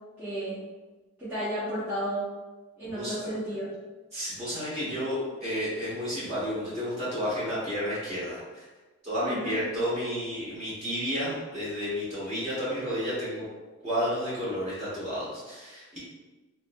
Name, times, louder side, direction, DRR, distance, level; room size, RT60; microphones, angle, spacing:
voice 1, 0.2-0.6 1.2-2.3 2.8-3.7 9.2-9.6, equal, 10° right, -14 dB, 0.7 m, -32 dB
voice 2, 2.9-3.3 4.1-8.6 9.0-13.4 13.8-16.0, equal, 30° right, -9 dB, 1.3 m, -31 dB
3.1 x 2.2 x 2.6 m, 1.2 s
head